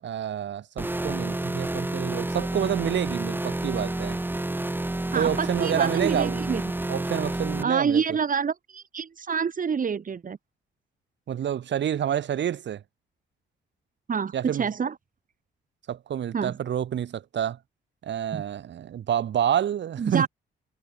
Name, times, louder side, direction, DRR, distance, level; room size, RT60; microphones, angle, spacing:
voice 1, 0.0-4.2 5.1-6.5 6.9-8.2 11.3-12.8 14.3-14.7 15.9-17.6 18.0-20.3, right 10 dB, 65° right, 7.3 m, -28 dB
sound 1, 0.8-7.6, right 1 dB, 10° right, 2.0 m, -29 dB
voice 2, 5.1-6.6 7.6-10.4 14.1-14.3 14.6-14.9 16.3-16.5 18.3-18.4 20.0-20.3, right 6 dB, 40° right, 3.6 m, -27 dB
cardioid pair, 90°, 20 cm